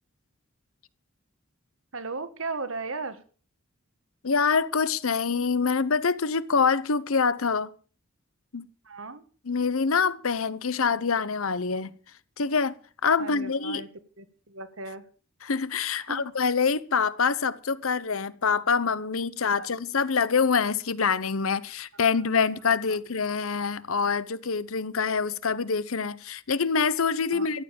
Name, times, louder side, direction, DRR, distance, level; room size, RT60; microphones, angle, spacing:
voice 1, 1.9-3.2 8.8-9.2 13.2-13.9 14.2-15.0 16.0-16.3 19.6-19.7 22.2-22.3 22.9-23.0 27.3-27.5, right 3 dB, 75° right, 1.5 m, -36 dB
voice 2, 4.2-7.7 8.5-8.7 9.5-11.9 12.4-13.8 15.4-27.6, left 5 dB, 80° left, 0.9 m, -25 dB
14.0 x 9.5 x 7.0 m
head